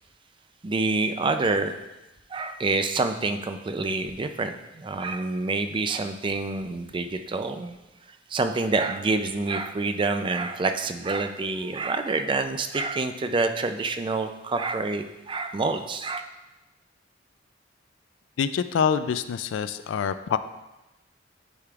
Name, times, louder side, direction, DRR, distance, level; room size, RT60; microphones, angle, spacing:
voice 1, 0.6-1.7 2.3-7.8 8.3-16.2, right 3 dB, 25° right, 8 dB, 0.3 m, -27 dB
voice 2, 18.4-20.4, left 7 dB, 80° left, 12 dB, 0.3 m, -25 dB
9.8 x 5.0 x 2.4 m, 1.0 s
head